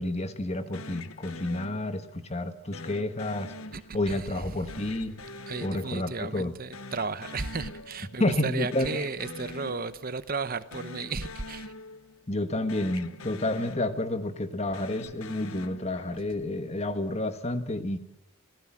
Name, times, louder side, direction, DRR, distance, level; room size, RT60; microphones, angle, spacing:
voice 1, 0.0-3.5 3.9-5.2 5.6-6.5 8.2-8.9 12.3-18.0, left 1 dB, 30° left, 10 dB, 1.5 m, -30 dB
sound 1, 0.7-2.2 2.7-4.3 4.7-6.5 6.7-8.3 8.5-10.2 10.6-12.4 12.7-14.3 14.7-16.4, left 2 dB, 85° left, 1.3 m, -44 dB
voice 2, 3.7-4.4 5.5-11.7, right 4 dB, 45° right, 13 dB, 0.9 m, -34 dB
27.5 x 17.0 x 7.5 m, 0.76 s
head